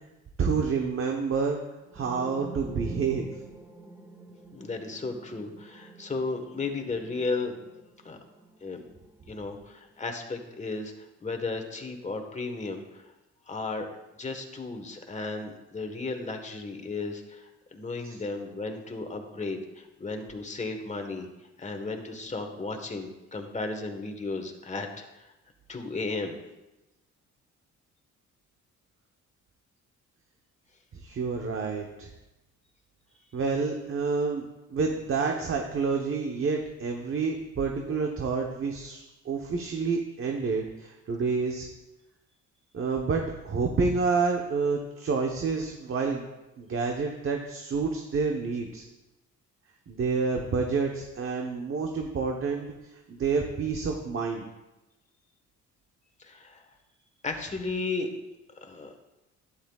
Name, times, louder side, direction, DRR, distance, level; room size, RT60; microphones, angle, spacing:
voice 1, 0.4-1.6 1.9-3.3 31.0-32.1 33.3-41.7 42.7-46.3 46.6-48.8 49.9-54.4, right 4 dB, 45° right, 2 dB, 1.0 m, -28 dB
sound 1, 1.8-9.7, right 2 dB, 10° right, 1.3 m, -47 dB
voice 2, 4.5-7.6 8.0-8.2 8.6-8.8 9.3-10.9 11.2-13.0 13.5-13.9 14.2-21.3 21.6-25.3 25.7-26.4 56.2-56.6 57.2-58.1 58.6-58.9, left 3 dB, 25° left, 4 dB, 1.3 m, -34 dB
11.5 x 9.9 x 2.4 m, 1.0 s
cardioid pair, 90°, 30 cm